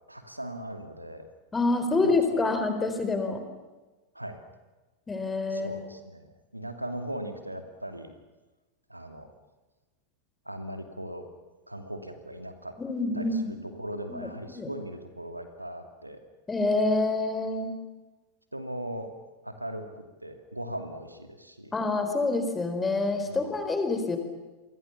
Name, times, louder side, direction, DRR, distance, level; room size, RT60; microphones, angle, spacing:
voice 1, 0.1-1.3 2.0-2.5 4.1-4.4 5.5-8.1 8.9-9.3 10.5-11.3 11.7-12.8 13.1-16.2 18.5-19.1 19.4-21.7 23.2-23.5, right 1 dB, 85° right, 7 dB, 2.6 m, -39 dB
voice 2, 1.5-3.4 5.1-5.8 12.8-13.6 14.1-14.7 16.5-17.7 21.7-24.2, left 3 dB, 15° left, 7 dB, 4.4 m, -27 dB
29.0 x 23.5 x 7.2 m, 1.2 s
figure-of-eight pair, 90°, 0 cm